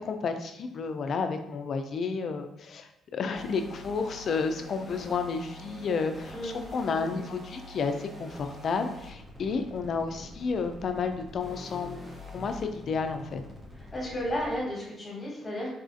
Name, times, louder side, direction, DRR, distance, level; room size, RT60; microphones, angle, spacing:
voice 1, 0.0-12.0 12.3-13.4, left 5 dB, 55° left, 7 dB, 0.4 m, -31 dB
sound 1, 3.3-14.6, left 1 dB, 15° right, 0.9 m, -46 dB
voice 2, 6.3-6.7 13.9-15.7, equal, 25° left, -3 dB, 1.3 m, -33 dB
4.1 x 2.3 x 2.6 m, 0.88 s
cardioid pair, 90°, 0 cm